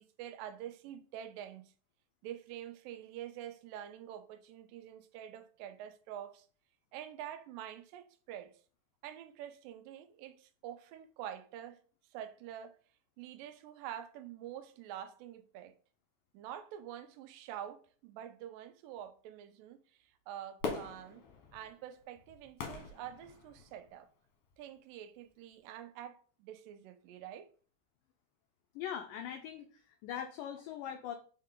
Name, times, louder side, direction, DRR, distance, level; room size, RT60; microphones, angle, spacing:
voice 1, 0.0-1.7 2.2-6.5 6.9-8.6 9.0-11.8 12.1-12.8 13.2-15.7 16.3-21.2 21.5-24.1 24.6-27.5, right 10 dB, 80° right, 2.1 m, -47 dB
Fireworks, 20.6-23.9 24.5-24.6, left 5 dB, 65° left, 2.2 m, -42 dB
voice 2, 28.8-31.2, left 9 dB, 85° left, 1.9 m, -41 dB
5.5 x 4.7 x 3.7 m
omnidirectional pair, 4.4 m